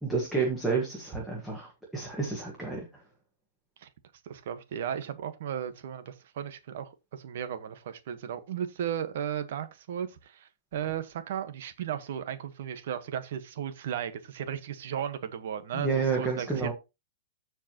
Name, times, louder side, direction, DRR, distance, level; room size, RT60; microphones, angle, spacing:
voice 1, 0.0-2.9 15.7-16.7, right 4 dB, ahead, 1.5 m, -30 dB
voice 2, 4.2-16.7, right 9 dB, 50° right, 1.2 m, -35 dB
14.0 x 4.7 x 2.9 m
supercardioid pair, 175°, 0 cm